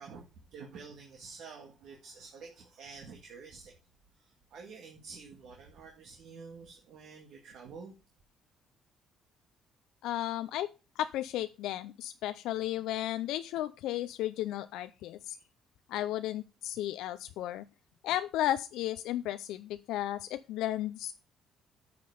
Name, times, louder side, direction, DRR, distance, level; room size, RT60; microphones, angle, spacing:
voice 1, 0.0-3.7 4.2-7.9, right 5 dB, 70° right, 1.9 m, -49 dB
voice 2, 10.0-10.7 11.0-15.4 15.9-17.6 18.0-21.1, left 13 dB, 85° left, 0.4 m, -34 dB
9.4 x 6.0 x 4.9 m
cardioid pair, 110°, 0 cm